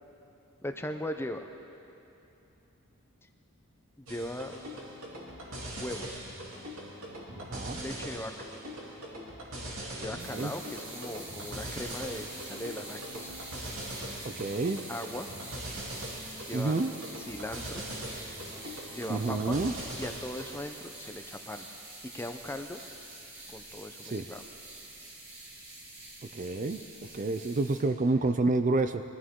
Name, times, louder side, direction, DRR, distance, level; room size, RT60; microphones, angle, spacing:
voice 1, 0.6-1.5 4.0-4.6 5.8-6.3 7.6-8.5 10.0-13.3 14.9-15.3 16.4-16.7 17.2-17.8 18.9-19.6 20.0-21.7 22.1-22.8 23.5-24.4, left 1 dB, 10° left, 6 dB, 0.6 m, -39 dB
sound 1, 4.1-20.6, right 1 dB, 80° right, 2.8 m, -41 dB
voice 2, 7.4-7.8 10.1-10.5 14.2-14.8 16.5-16.9 19.1-19.7 24.1-24.2 26.3-26.8 27.1-29.0, right 3 dB, 35° right, 9 dB, 0.4 m, -29 dB
sound 2, 10.2-27.8, right 2 dB, 60° right, 3.5 m, -46 dB
22.5 x 14.0 x 3.7 m, 2.9 s
head